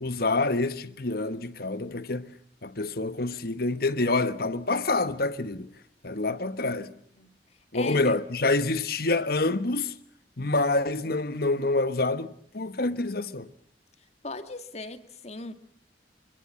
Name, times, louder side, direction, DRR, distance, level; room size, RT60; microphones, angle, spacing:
voice 1, 0.0-2.3 2.6-5.7 6.0-6.9 7.7-9.9 10.4-12.3 12.5-13.5, left 2 dB, 60° left, 1.4 m, -27 dB
voice 2, 6.9-7.3 7.7-8.1 14.2-15.5, left 3 dB, 40° left, 2.0 m, -39 dB
26.5 x 25.0 x 7.6 m
head